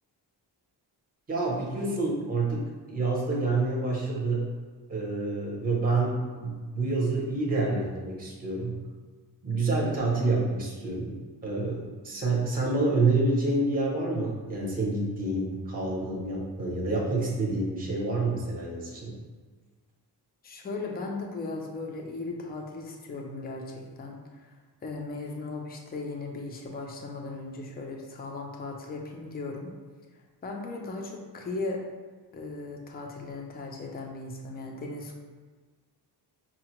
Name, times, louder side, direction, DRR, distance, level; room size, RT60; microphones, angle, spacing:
voice 1, 1.3-4.4 4.9-8.8 9.4-19.2, right 3 dB, 20° right, -3 dB, 0.7 m, -28 dB
voice 2, 20.4-24.5 24.8-29.7 30.4-31.8 32.3-35.2, left 3 dB, 25° left, 1 dB, 0.4 m, -37 dB
5.6 x 2.1 x 2.9 m, 1.4 s
wide cardioid pair, 180°, 42 cm